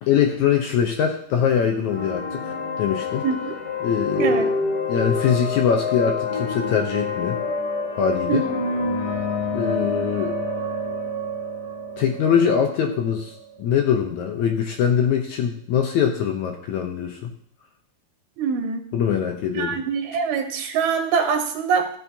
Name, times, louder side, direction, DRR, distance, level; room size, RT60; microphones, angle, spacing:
voice 1, 0.0-3.2 3.8-4.5 4.9-7.4 8.0-8.4 9.5-10.4 12.0-17.3 18.9-19.8, left 7 dB, 75° left, 3 dB, 1.8 m, -22 dB
sound 1, 1.9-13.5, left 3 dB, 40° left, 2.7 m, -27 dB
voice 2, 4.2-4.5 8.3-8.6 18.4-18.8 19.5-21.9, right 6 dB, 90° right, 5 dB, 2.9 m, -23 dB
15.0 x 7.3 x 2.8 m, 0.63 s
omnidirectional pair, 4.3 m